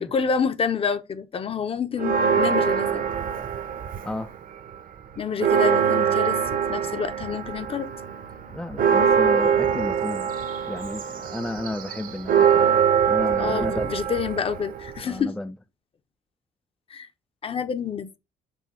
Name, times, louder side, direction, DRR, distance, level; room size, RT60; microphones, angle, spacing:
voice 1, 0.0-3.1 5.2-7.9 13.4-15.4 16.9-17.1 17.4-18.2, left 6 dB, 35° left, 0.8 m, -28 dB
Church bell, 2.0-4.4 4.7-4.8 5.1-15.2, right 7 dB, 55° right, 1.0 m, -23 dB
voice 2, 8.5-10.3 10.7-12.7 13.1-13.9 15.0-15.5, left 1 dB, 5° left, 0.4 m, -32 dB
6.3 x 2.8 x 5.6 m
cardioid pair, 110°, 17 cm